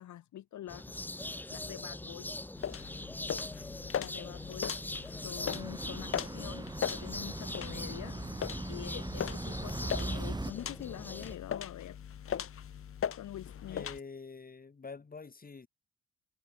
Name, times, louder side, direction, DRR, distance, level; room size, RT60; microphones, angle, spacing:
voice 1, 0.0-2.4 3.8-4.8 5.2-8.2 8.7-12.0 13.1-13.9, left 12 dB, 70° left, 1.6 m, -46 dB
sound 1, 0.7-11.4, left 2 dB, 5° left, 0.5 m, -42 dB
sound 2, 2.6-14.0, left 9 dB, 45° left, 1.2 m, -40 dB
sound 3, 5.4-10.5, right 2 dB, 15° right, 2.4 m, -40 dB
voice 2, 13.7-15.7, left 4 dB, 30° left, 3.6 m, -46 dB
cardioid pair, 90°, 30 cm